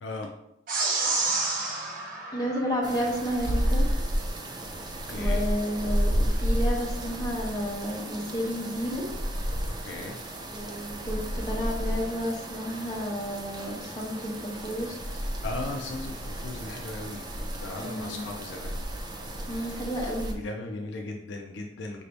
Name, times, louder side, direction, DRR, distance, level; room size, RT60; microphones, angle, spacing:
voice 1, 0.0-0.3 5.1-5.5 9.7-10.2 15.4-18.8 20.4-22.0, left 2 dB, 60° left, 2 dB, 0.5 m, -37 dB
sound 1, 0.7-3.3, right 3 dB, 40° right, 0.7 m, -30 dB
voice 2, 2.3-3.9 5.1-9.0 10.5-15.2 17.8-18.3 19.5-20.4, equal, 20° left, -3 dB, 0.8 m, -31 dB
sound 2, 2.8-20.3, equal, 20° right, 0.4 m, -32 dB
5.2 x 2.7 x 3.3 m, 0.83 s
head